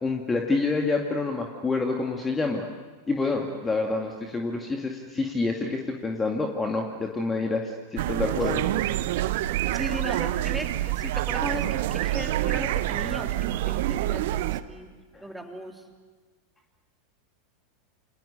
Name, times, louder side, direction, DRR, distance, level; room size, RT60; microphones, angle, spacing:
voice 1, 0.0-2.7 3.1-8.6 15.1-15.3, left 3 dB, 15° left, 2 dB, 2.3 m, -27 dB
sound 1, 8.0-14.6, right 14 dB, 50° right, 1.0 m, -27 dB
voice 2, 9.7-14.9 15.2-15.7, right 1 dB, 5° right, 2 dB, 3.5 m, -36 dB
30.0 x 28.5 x 6.8 m, 1.4 s
figure-of-eight pair, 90°, 0 cm